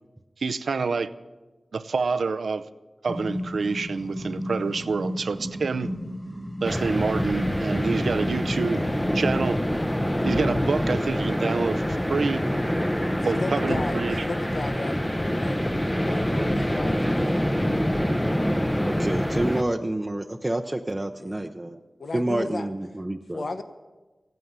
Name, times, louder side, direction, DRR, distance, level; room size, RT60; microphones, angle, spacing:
voice 1, 0.4-1.1 1.7-2.6 3.0-5.9 6.6-9.6 10.2-12.5 13.2-14.2, right 4 dB, 85° right, 12 dB, 0.6 m, -27 dB
sound 1, 3.1-10.5, equal, 5° right, 1.4 m, -34 dB
sound 2, 6.6-19.6, equal, 10° left, 0.9 m, -25 dB
voice 2, 13.2-15.6 16.0-17.2 21.2-21.3 22.0-22.7 23.3-23.6, left 3 dB, 70° left, 9 dB, 0.9 m, -34 dB
voice 3, 18.9-21.8 22.1-23.5, right 1 dB, 20° right, 3 dB, 0.7 m, -28 dB
15.5 x 9.3 x 8.1 m, 1.2 s
wide cardioid pair, 55°, 0 cm